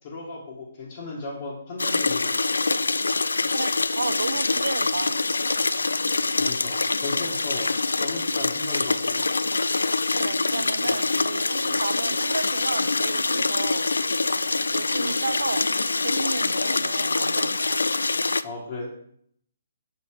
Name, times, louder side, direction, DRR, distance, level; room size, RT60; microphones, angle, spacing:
voice 1, 0.0-2.3 6.4-9.3 18.4-18.9, left 2 dB, 45° left, -6 dB, 1.8 m, -35 dB
sound 1, 1.8-18.4, left 3 dB, 85° left, 0.3 m, -25 dB
voice 2, 3.5-5.1 10.2-14.2 14.7-15.7 16.0-17.8, right 4 dB, 80° right, 15 dB, 0.4 m, -32 dB
5.9 x 5.5 x 4.9 m, 0.68 s
hypercardioid pair, 145°, 0 cm